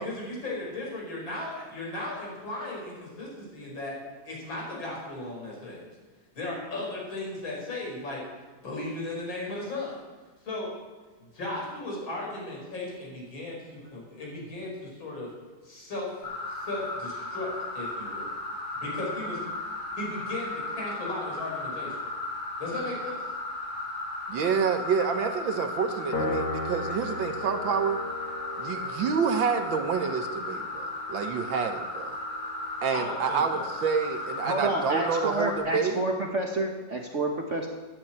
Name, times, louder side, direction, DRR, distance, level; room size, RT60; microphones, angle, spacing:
voice 1, 0.0-4.0 4.2-5.9 6.4-8.2 8.6-10.0 10.5-10.7 11.3-15.3 15.6-18.3 18.7-19.4 20.0-22.0 22.6-23.3 32.9-33.6, left 2 dB, 65° left, -2 dB, 5.5 m, -36 dB
sound 1, 16.2-35.6, left 2 dB, 45° left, 5.4 m, -35 dB
voice 2, 24.3-28.0 28.6-32.2 32.8-36.0, right 6 dB, 65° right, 7 dB, 1.7 m, -28 dB
Piano, 26.1-32.7, left 2 dB, 90° left, 2.9 m, -37 dB
voice 3, 34.4-37.7, right 2 dB, 40° right, 2 dB, 1.3 m, -29 dB
12.0 x 9.6 x 8.7 m, 1.4 s
omnidirectional pair, 2.3 m